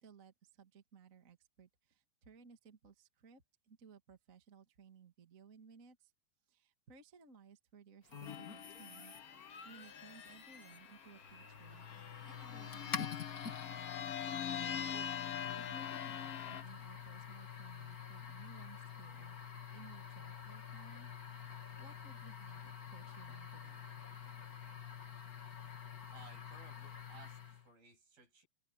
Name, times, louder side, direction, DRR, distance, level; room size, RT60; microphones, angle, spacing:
voice 1, 0.0-6.1 6.5-9.1 9.6-11.9 12.3-13.8 14.4-15.3 15.6-21.1 21.8-23.9, right 5 dB, 30° right, 1.8 m, -60 dB
sound 1, 8.1-27.7, left 7 dB, 30° left, 1.9 m, -48 dB
sound 2, 8.2-11.0 11.8-16.6, left 8 dB, 70° left, 1.4 m, -43 dB
voice 2, 26.1-28.5, right 4 dB, 65° right, 9.3 m, -60 dB
omnidirectional pair, 4.5 m